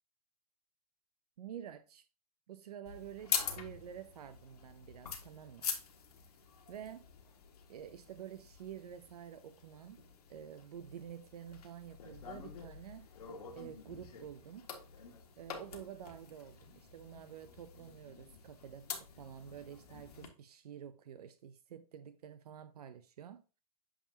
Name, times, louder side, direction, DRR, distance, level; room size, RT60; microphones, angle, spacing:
voice 1, 1.4-2.1 2.5-5.7 6.7-7.1 7.7-10.0 10.3-13.1 13.5-14.7 15.4-18.9 19.2-23.4, right 9 dB, 85° right, 0.6 m, -49 dB
sound 1, 2.9-20.3, left 7 dB, 85° left, 1.7 m, -45 dB
8.8 x 4.9 x 2.8 m
hypercardioid pair, 125°, 19 cm